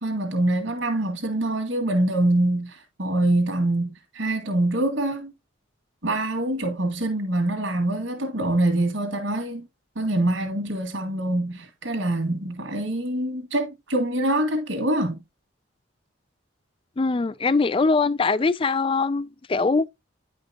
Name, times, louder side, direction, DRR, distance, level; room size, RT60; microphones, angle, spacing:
voice 1, 0.0-5.3 6.0-9.7 10.0-15.2, right 1 dB, 65° right, 2.0 m, -25 dB
voice 2, 17.0-19.9, left 4 dB, 25° left, 0.3 m, -22 dB
10.0 x 5.2 x 2.8 m
head